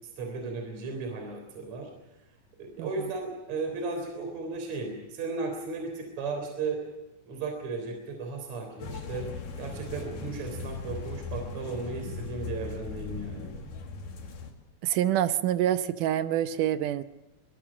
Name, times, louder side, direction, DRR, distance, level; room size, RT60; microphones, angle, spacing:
voice 1, 0.0-1.9 2.6-6.8 7.3-9.3 9.6-13.5, right 4 dB, 50° right, 4 dB, 4.7 m, -35 dB
sound 1, 8.8-14.5, left 4 dB, 65° left, 3.9 m, -38 dB
voice 2, 14.8-17.0, right 11 dB, 70° right, 11 dB, 2.2 m, -26 dB
23.5 x 22.0 x 6.2 m, 0.98 s
omnidirectional pair, 4.2 m